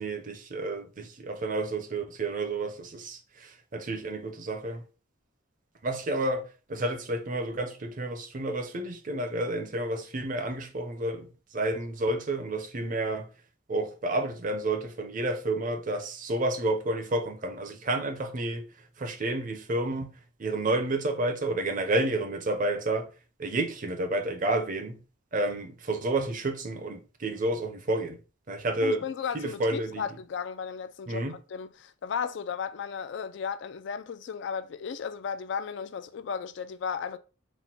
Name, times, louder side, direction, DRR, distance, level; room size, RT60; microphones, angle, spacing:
voice 1, 0.0-4.8 5.8-11.3 11.5-13.3 13.7-18.6 19.0-20.1 20.4-23.1 23.4-25.0 25.3-28.2 28.5-29.0 29.3-30.0 31.1-31.4, right 2 dB, 40° right, 0.6 m, -30 dB
voice 2, 28.8-37.2, left 6 dB, 60° left, 0.3 m, -35 dB
4.1 x 2.1 x 4.3 m
head